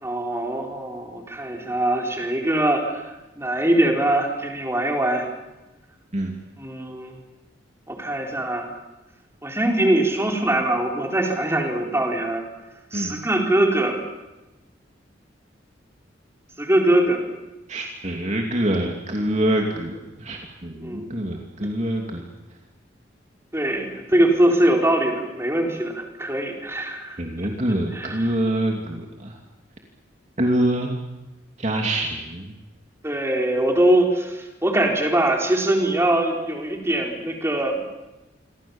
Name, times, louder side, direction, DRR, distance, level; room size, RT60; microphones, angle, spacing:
voice 1, 0.0-5.3 6.6-7.2 7.9-8.7 9.4-12.4 12.9-14.0 16.6-17.2 20.8-21.2 23.5-27.2 27.9-28.4 33.0-37.8, right 1 dB, 15° right, 1 dB, 4.4 m, -22 dB
voice 2, 17.7-22.2 27.2-29.3 30.4-31.0 31.6-32.4, right 1 dB, 40° right, 2 dB, 2.9 m, -25 dB
28.5 x 24.0 x 7.3 m, 1.0 s
head